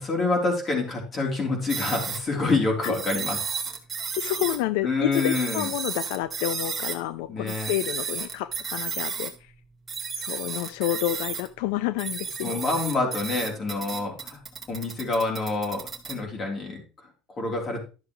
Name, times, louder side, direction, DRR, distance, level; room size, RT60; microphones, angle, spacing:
voice 1, 0.0-3.4 4.8-5.7 7.3-7.7 12.4-14.4 14.7-17.8, left 3 dB, 25° left, 1 dB, 3.7 m, -27 dB
sound 1, 1.7-2.2 2.8-4.6 5.1-7.0 7.5-9.3 9.9-11.5 12.0-16.2, right 6 dB, 20° right, 1.9 m, -33 dB
voice 2, 4.2-9.5 10.2-12.6, left 14 dB, 85° left, 14 dB, 0.5 m, -29 dB
12.0 x 7.0 x 3.2 m, 0.33 s
cardioid pair, 145°, 0 cm